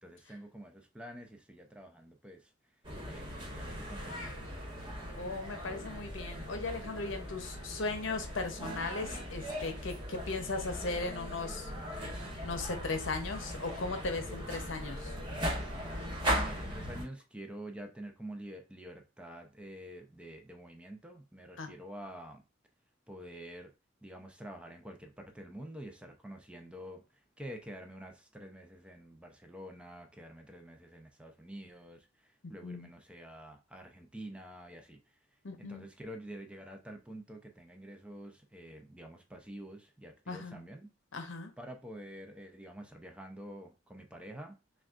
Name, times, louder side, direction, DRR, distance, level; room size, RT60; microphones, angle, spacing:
voice 1, 0.0-2.5 3.1-4.3 16.3-22.4 23.1-23.7 24.0-35.0 35.6-40.9 41.6-44.6, right 1 dB, 5° right, 0.5 m, -48 dB
sound 1, 2.8-17.1, equal, 25° right, 1.3 m, -39 dB
voice 2, 5.1-11.7 12.4-15.1 21.6-21.7 32.6-32.9 35.4-35.9 40.3-40.6 41.1-41.5, left 3 dB, 70° left, 0.8 m, -37 dB
6.1 x 2.4 x 2.4 m
head